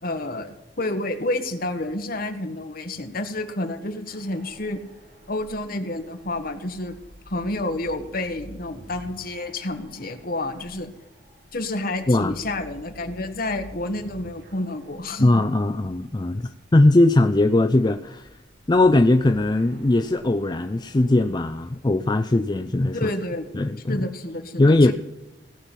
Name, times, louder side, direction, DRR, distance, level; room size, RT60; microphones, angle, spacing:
voice 1, 0.0-4.8 5.3-6.9 7.2-10.9 11.5-15.4 22.9-23.5 23.9-24.9, left 2 dB, 55° left, 6 dB, 1.6 m, -29 dB
sound 1, 4.0-23.5, equal, 90° right, 7.1 m, -50 dB
voice 2, 15.2-16.4 16.7-18.3 18.7-23.1 23.6-24.1 24.6-24.9, left 2 dB, 25° left, 8 dB, 0.5 m, -19 dB
17.5 x 5.9 x 9.9 m, 0.99 s
head